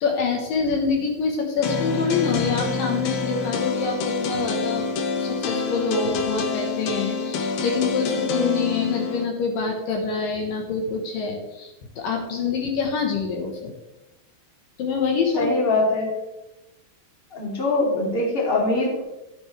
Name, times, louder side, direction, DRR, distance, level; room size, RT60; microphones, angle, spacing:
voice 1, 0.0-4.8 5.2-13.7 14.8-15.5, left 5 dB, 70° left, 2 dB, 2.7 m, -26 dB
sound 1, 1.6-9.2, left 5 dB, 85° left, 2.8 m, -27 dB
voice 2, 15.3-16.1 17.3-19.0, left 2 dB, 15° left, -3 dB, 2.4 m, -22 dB
13.5 x 9.2 x 3.3 m, 0.97 s
omnidirectional pair, 4.3 m